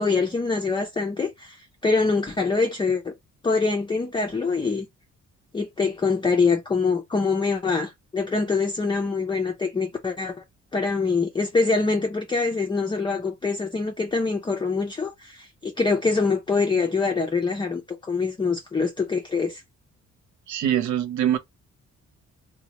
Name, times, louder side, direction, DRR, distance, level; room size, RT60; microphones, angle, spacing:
voice 1, 0.0-3.1 3.4-4.9 5.5-10.4 10.7-19.6, left 4 dB, 15° left, 0.4 m, -24 dB
voice 2, 20.5-21.4, right 10 dB, 70° right, 0.6 m, -23 dB
2.7 x 2.2 x 2.8 m
cardioid pair, 90°, 30 cm